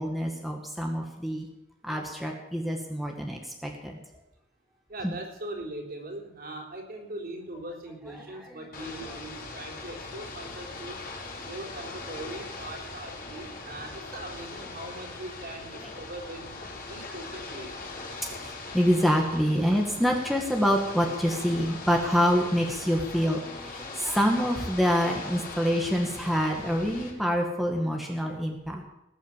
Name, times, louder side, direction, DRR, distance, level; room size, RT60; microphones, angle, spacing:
voice 1, 0.0-1.5 1.8-4.0 5.0-5.1 8.3-9.2 15.8-15.9 18.0-28.8, equal, ahead, 0 dB, 1.9 m, -27 dB
voice 2, 4.9-11.0 11.4-16.5 16.8-17.8, right 1 dB, 50° right, 2 dB, 4.0 m, -40 dB
Ocean / Boat Water vehicle, 8.7-27.1, left 3 dB, 50° left, 5.4 m, -40 dB
20.0 x 9.2 x 7.4 m, 0.88 s
head